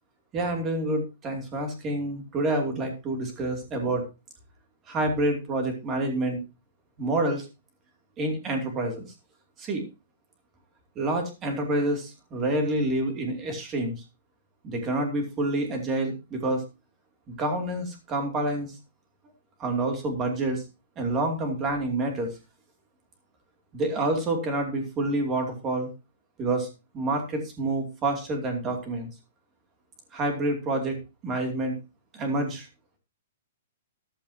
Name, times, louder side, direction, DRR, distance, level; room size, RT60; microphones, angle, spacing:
voice 1, 0.3-4.1 4.9-6.4 7.0-7.5 8.2-9.0 9.6-9.9 11.0-14.0 14.6-16.6 17.3-18.8 19.6-20.6 21.0-22.3 23.7-25.9 26.4-26.7 26.9-29.1 30.1-31.0 31.2-31.8 32.1-32.7, right 2 dB, 15° right, 4 dB, 2.7 m, -28 dB
14.0 x 11.5 x 2.8 m, 0.27 s
hypercardioid pair, 175°, 0 cm